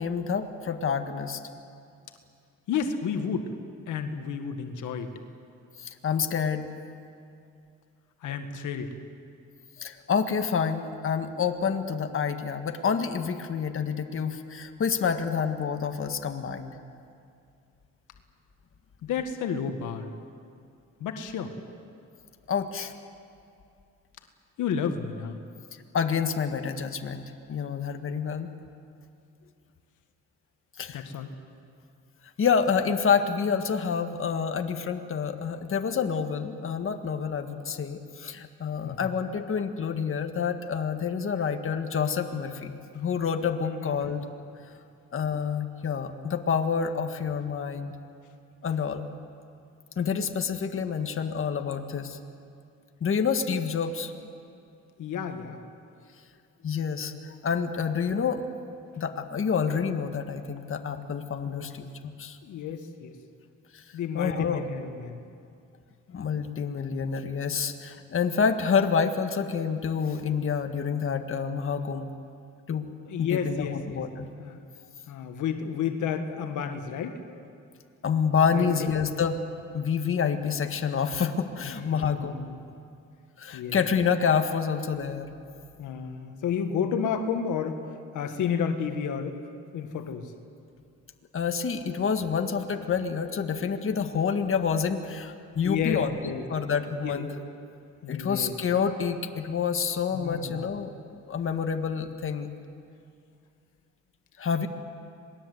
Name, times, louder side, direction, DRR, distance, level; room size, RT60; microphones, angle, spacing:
voice 1, 0.0-1.4 5.8-6.7 9.8-16.7 22.5-22.9 25.9-27.2 27.5-28.5 30.8-31.1 32.4-44.2 45.1-47.9 48.6-49.1 50.0-52.2 53.0-54.1 56.6-58.4 59.0-62.4 63.7-63.8 64.1-64.7 66.1-72.1 72.7-72.9 73.2-74.3 78.0-79.4 79.7-82.3 83.4-85.3 91.3-96.2 96.5-97.3 98.1-100.9 101.3-102.5 104.4-104.7, left 6 dB, 45° left, 6 dB, 1.7 m, -28 dB
voice 2, 2.7-3.5 3.9-5.1 8.2-8.9 19.0-20.1 21.0-21.5 24.6-25.4 30.9-31.3 38.8-39.2 43.7-44.1 55.0-55.6 61.5-61.7 62.4-63.2 63.9-65.2 73.1-74.0 74.4-74.6 75.1-77.2 78.5-78.9 81.6-82.6 83.5-83.8 85.8-87.9 88.1-89.4 89.7-90.3 95.6-96.4 97.0-97.2 98.0-98.5 100.1-100.6, left 7 dB, 80° left, 6 dB, 1.7 m, -31 dB
27.0 x 20.0 x 7.9 m, 2.4 s
cardioid pair, 90°, 30 cm